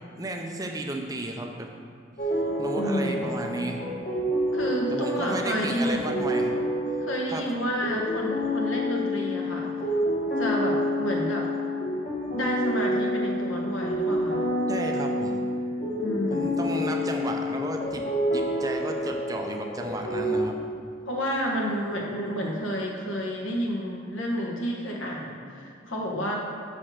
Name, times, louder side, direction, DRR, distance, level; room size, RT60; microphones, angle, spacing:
voice 1, 0.2-1.7 2.2-3.8 4.9-6.5 7.3-7.4 14.7-15.4 16.3-18.1 18.3-20.6, right 1 dB, 20° right, 2 dB, 0.5 m, -33 dB
sound 1, 2.2-20.4, equal, 40° left, 1.2 m, -28 dB
voice 2, 2.8-3.3 4.5-6.3 7.0-9.9 10.4-11.5 12.3-14.5 16.0-16.6 21.0-26.4, equal, 85° left, -1 dB, 1.4 m, -30 dB
7.4 x 4.9 x 5.7 m, 2.4 s
head